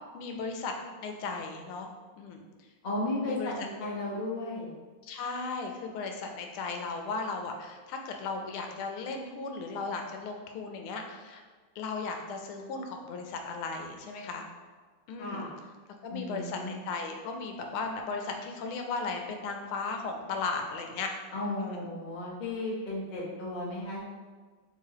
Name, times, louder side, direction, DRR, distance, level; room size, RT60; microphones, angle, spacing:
voice 1, 0.1-0.7 1.0-1.9 2.2-2.4 3.2-3.7 5.0-11.4 11.8-14.5 15.1-15.4 16.0-21.1 21.6-21.8, left 4 dB, 90° left, 3 dB, 1.5 m, -36 dB
voice 2, 2.8-4.7 15.2-15.5 16.1-16.8 21.3-24.1, left 2 dB, 50° left, -5 dB, 0.5 m, -34 dB
3.4 x 2.9 x 4.7 m, 1.4 s
omnidirectional pair, 2.3 m